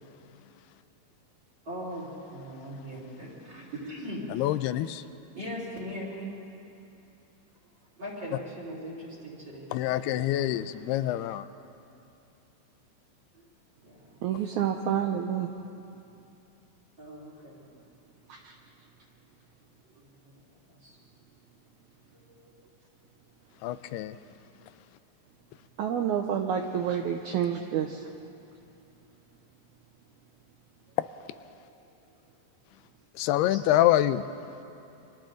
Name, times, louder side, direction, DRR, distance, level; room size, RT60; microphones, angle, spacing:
voice 1, 1.6-4.3 5.3-6.3 8.0-9.7 10.0-10.5 13.3-13.5 13.8-14.2 17.0-17.7 19.8-20.3 20.7-21.0 22.2-22.5 32.1-32.2, equal, 30° right, -5 dB, 4.6 m, -40 dB
voice 2, 4.3-5.1 9.7-11.5 23.6-24.2 24.7-24.8 31.0-31.1 33.1-34.2, left 13 dB, 90° left, 13 dB, 2.6 m, -26 dB
voice 3, 14.2-15.5 18.3-18.6 25.8-28.1 33.5-33.6, right 9 dB, 90° right, 4 dB, 1.7 m, -29 dB
30.0 x 25.0 x 3.9 m, 2.8 s
omnidirectional pair, 4.5 m